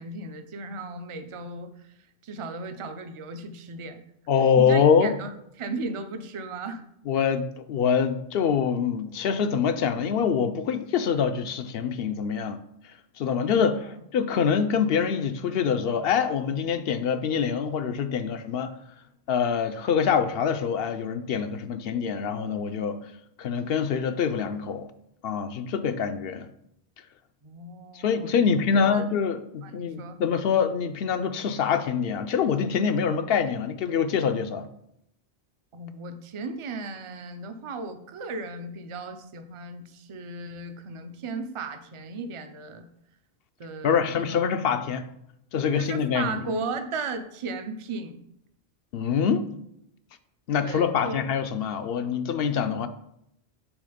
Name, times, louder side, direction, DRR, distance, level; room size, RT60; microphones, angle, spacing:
voice 1, 0.0-1.9 2.2-4.0 4.6-5.3 5.6-6.8 13.4-14.0 27.4-29.1 29.6-30.2 35.7-42.9 43.6-44.4 45.8-48.2 50.6-51.2, right 3 dB, 40° right, 0.5 m, -36 dB
voice 2, 4.3-5.2 7.1-12.6 13.2-13.8 14.1-18.7 19.3-23.0 23.4-24.9 25.2-26.5 27.9-34.7 43.8-45.0 45.5-46.4 48.9-49.5 50.5-52.9, left 7 dB, 70° left, 0.7 m, -25 dB
6.2 x 3.8 x 5.0 m
omnidirectional pair, 1.1 m